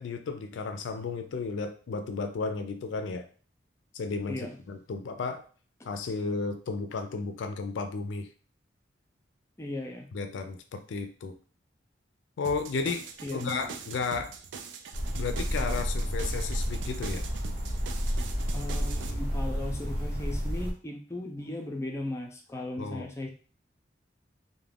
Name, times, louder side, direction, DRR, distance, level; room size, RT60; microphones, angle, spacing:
voice 1, 0.0-3.2 3.9-5.4 5.8-8.3 10.1-11.3 12.4-13.1 13.3-14.3 15.2-17.2 22.8-23.1, left 4 dB, 80° left, 7 dB, 0.4 m, -33 dB
voice 2, 9.6-10.1 13.2-13.7 18.5-23.3, left 1 dB, 15° left, 2 dB, 0.4 m, -37 dB
sound 1, 12.4-19.1, right 5 dB, 80° right, 0.3 m, -43 dB
sound 2, 14.9-20.7, equal, 45° right, 0.7 m, -31 dB
2.4 x 2.1 x 3.3 m, 0.40 s
head